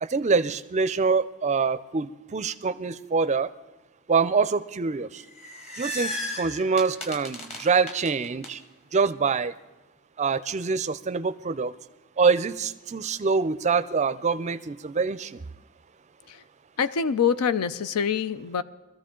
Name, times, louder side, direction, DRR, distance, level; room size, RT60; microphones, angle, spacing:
voice 1, 0.0-3.5 4.1-5.2 5.8-8.6 8.9-9.5 10.2-11.7 12.2-15.4, right 5 dB, 30° right, 14 dB, 0.4 m, -25 dB
sound 1, 5.2-8.5, equal, 30° left, 1.5 m, -35 dB
voice 2, 16.8-18.6, left 7 dB, 85° left, 14 dB, 0.5 m, -25 dB
22.5 x 14.0 x 3.8 m, 1.1 s
head